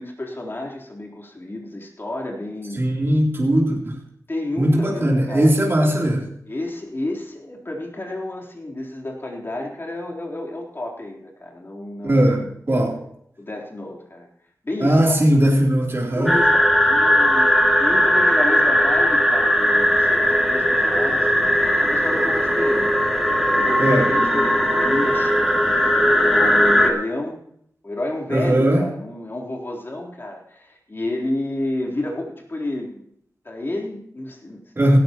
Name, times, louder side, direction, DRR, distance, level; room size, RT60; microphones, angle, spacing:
voice 1, 0.0-2.8 4.3-5.6 6.5-12.5 13.4-14.3 14.6-15.4 16.1-21.5 21.8-22.9 23.6-25.4 26.2-27.4 27.8-33.1 33.4-34.6, left 1 dB, 35° left, -1 dB, 3.9 m, -30 dB
voice 2, 2.8-4.0 4.6-6.3 12.0-13.0 14.8-16.3 23.8-24.1 28.3-28.9 34.8-35.0, right 1 dB, 40° right, -3 dB, 3.4 m, -18 dB
sound 1, 16.3-26.9, equal, ahead, 2.6 m, -18 dB
17.0 x 14.0 x 3.1 m, 0.71 s
wide cardioid pair, 65°, 6 cm